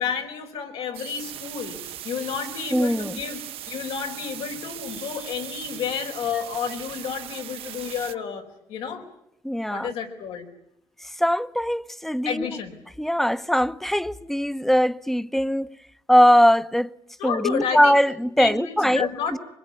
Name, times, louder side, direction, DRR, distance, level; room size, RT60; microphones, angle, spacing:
voice 1, 0.0-3.4 3.7-8.4 8.7-9.0 9.7-10.5 12.2-12.7 17.2-18.0 18.4-19.4, left 7 dB, 90° left, 4.8 m, -30 dB
sound 1, 0.9-8.1, right 12 dB, 85° right, 1.0 m, -39 dB
voice 2, 2.7-3.2 9.4-9.9 11.0-12.5 13.0-15.7 16.1-16.9 17.2-19.4, equal, 5° left, 0.9 m, -21 dB
24.5 x 22.0 x 9.9 m
cardioid pair, 85°, 10 cm